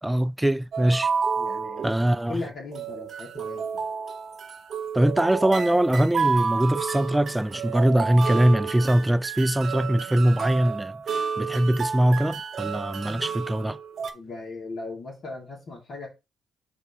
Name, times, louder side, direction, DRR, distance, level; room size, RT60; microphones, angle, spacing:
voice 1, 0.0-1.1 1.8-2.4 4.9-13.8, right 1 dB, 10° right, 0.5 m, -22 dB
sound 1, 0.7-2.3 2.7-14.1, right 5 dB, 65° right, 0.8 m, -30 dB
voice 2, 1.4-1.9 2.3-3.8 14.1-16.1, left 3 dB, 60° left, 3.2 m, -37 dB
5.2 x 3.9 x 5.2 m
hypercardioid pair, 50°, 0 cm